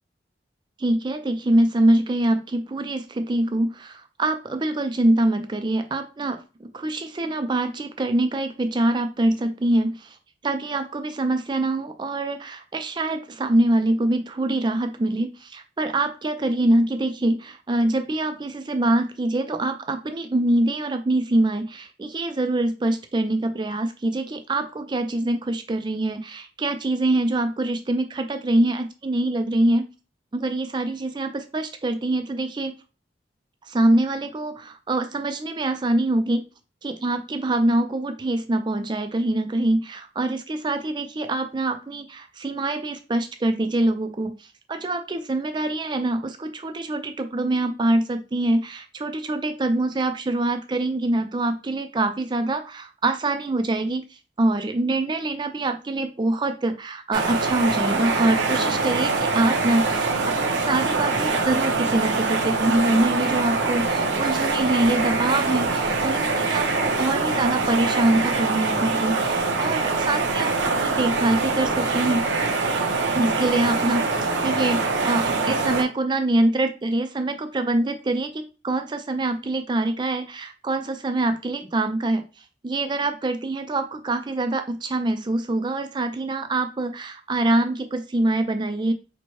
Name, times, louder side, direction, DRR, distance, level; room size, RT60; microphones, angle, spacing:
voice 1, 0.8-10.2 10.4-29.9 30.3-32.7 33.7-36.4 36.8-54.0 54.4-60.1 60.4-72.2 73.2-82.2 82.6-88.9, right 2 dB, 25° right, 8 dB, 0.4 m, -24 dB
sound 1, 57.1-75.8, right 3 dB, 80° right, 0.7 m, -24 dB
4.5 x 2.1 x 2.9 m, 0.31 s
head